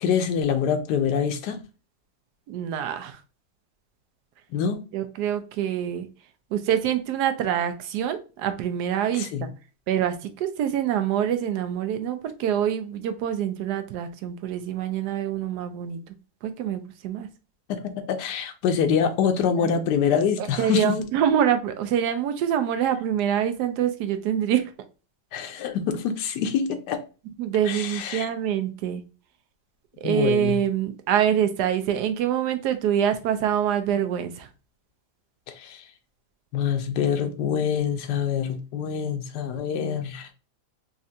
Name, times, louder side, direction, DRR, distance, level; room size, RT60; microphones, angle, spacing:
voice 1, 0.0-1.6 4.5-4.8 9.1-9.5 17.7-21.0 25.3-27.0 27.7-28.3 30.0-30.6 35.5-35.8 36.5-40.3, left 7 dB, 90° left, 1.2 m, -25 dB
voice 2, 2.5-3.2 4.9-6.1 6.5-9.5 9.9-16.0 16.4-17.3 19.6-19.7 20.4-24.7 27.4-29.0 30.0-34.5, right 9 dB, 80° right, 1.2 m, -25 dB
4.2 x 2.4 x 2.7 m
omnidirectional pair, 1.7 m